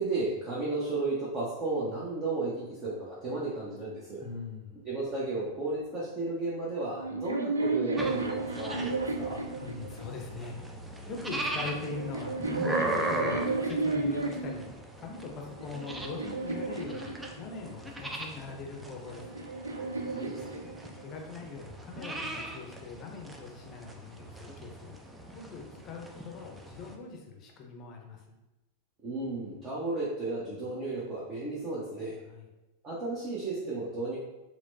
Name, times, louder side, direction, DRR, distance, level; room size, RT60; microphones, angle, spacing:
voice 1, 0.0-4.2 4.8-9.4 19.8-20.7 29.0-32.2 32.8-34.2, right 3 dB, 30° right, -8 dB, 0.8 m, -34 dB
voice 2, 4.2-4.7 9.4-10.7 11.1-12.4 12.6-14.7 15.0-19.4 21.0-24.9 25.3-28.4 32.2-32.4, left 4 dB, 35° left, 1 dB, 0.6 m, -41 dB
sound 1, 4.8-12.1, equal, 60° right, 0.9 m, -52 dB
sound 2, 6.9-10.3 11.2-14.6 15.3-17.7 18.8-21.2, right 3 dB, 80° right, 0.3 m, -33 dB
sound 3, 8.0-27.0, right 1 dB, 10° right, 0.4 m, -39 dB
4.2 x 2.2 x 2.7 m, 1.0 s
figure-of-eight pair, 90°, 0 cm